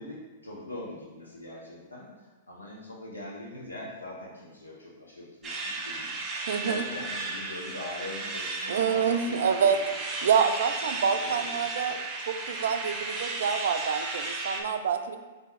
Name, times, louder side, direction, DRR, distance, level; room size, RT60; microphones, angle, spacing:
voice 1, 0.0-6.2 6.6-9.8 10.9-12.0, left 1 dB, 90° left, -3 dB, 1.0 m, -42 dB
sound 1, 5.4-14.6, right 3 dB, 25° right, 0.7 m, -35 dB
voice 2, 6.5-6.9 8.7-9.8 10.2-12.0 12.3-15.2, right 7 dB, 65° right, 8 dB, 0.4 m, -27 dB
4.0 x 3.6 x 3.1 m, 1.2 s
figure-of-eight pair, 110°, 0 cm